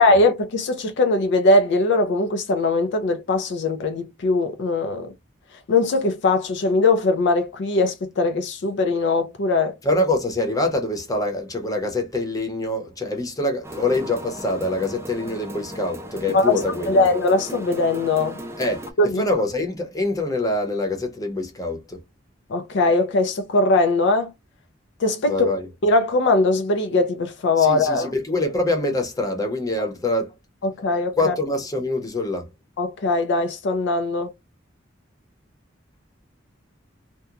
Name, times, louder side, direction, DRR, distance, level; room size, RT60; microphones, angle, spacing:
voice 1, 0.0-5.1 5.7-9.7 16.3-16.6 16.9-18.4 19.0-19.2 22.5-24.3 25.0-25.5 25.8-28.1 30.6-31.3 32.8-34.3, left 2 dB, 65° left, 0.4 m, -20 dB
voice 2, 9.8-17.1 18.6-18.9 19.2-22.0 25.3-25.7 27.6-30.3 31.2-32.5, left 2 dB, 20° left, 0.8 m, -25 dB
sound 1, 13.6-18.9, equal, 15° right, 0.4 m, -36 dB
2.8 x 2.2 x 2.3 m
head